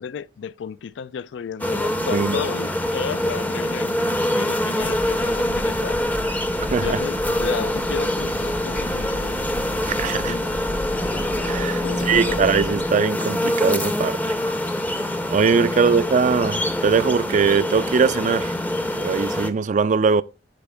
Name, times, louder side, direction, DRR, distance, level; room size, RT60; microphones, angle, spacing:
voice 1, 0.0-6.0 6.7-9.5 10.2-10.5 11.8-12.4 15.7-15.9, left 7 dB, 75° left, 0.3 m, -33 dB
sound 1, 1.6-19.5, left 1 dB, 10° left, 0.5 m, -25 dB
sound 2, 4.8-12.9, left 1 dB, 55° left, 0.9 m, -34 dB
voice 2, 9.9-10.4 11.4-14.3 15.3-18.5 19.0-20.2, right 5 dB, 40° right, 0.3 m, -21 dB
10.5 x 4.5 x 3.4 m
head